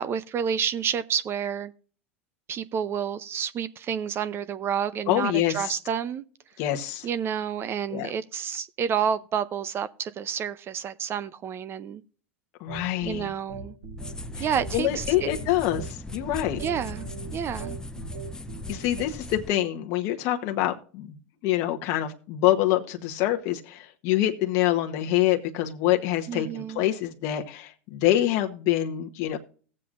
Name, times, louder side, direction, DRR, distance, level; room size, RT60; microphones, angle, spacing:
voice 1, 0.0-1.7 2.5-6.2 7.0-12.0 13.0-13.8 14.4-15.3 16.6-17.8 26.3-26.8, right 8 dB, 35° right, 0.6 m, -29 dB
voice 2, 5.1-5.7 6.6-7.1 7.9-8.1 12.6-13.3 14.4-16.6 18.7-21.1 21.4-29.4, left 13 dB, 55° left, 1.0 m, -26 dB
sound 1, 12.7-19.0, right 4 dB, 75° right, 4.4 m, -40 dB
sound 2, 14.0-19.5, left 2 dB, 10° left, 0.7 m, -39 dB
17.5 x 7.6 x 2.5 m
hypercardioid pair, 95°, 7 cm